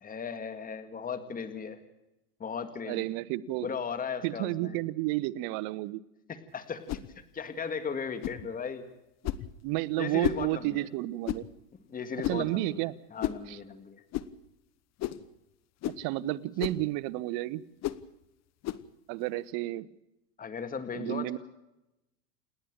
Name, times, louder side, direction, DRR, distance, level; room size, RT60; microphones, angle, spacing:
voice 1, 0.0-1.8 2.4-3.1 3.6-4.8 6.3-6.8 7.2-8.9 10.0-10.9 11.9-14.0 20.4-21.4, left 6 dB, 15° left, 10 dB, 1.9 m, -37 dB
voice 2, 2.9-3.7 4.2-6.0 9.6-11.4 12.3-12.9 13.5-13.6 16.0-17.6 19.1-19.9 20.9-21.4, right 17 dB, 50° right, 17 dB, 1.1 m, -31 dB
sound 1, 6.9-7.1 8.2-8.4 9.2-9.5 10.2-10.5 11.2-11.5 12.2-12.5 13.2-13.4 14.1-14.3 15.0-15.3 15.8-16.0 16.6-16.8 17.8-18.0 18.6-18.9, left 13 dB, 35° left, 1.0 m, -33 dB
28.5 x 10.5 x 8.8 m, 0.91 s
supercardioid pair, 120°, 47 cm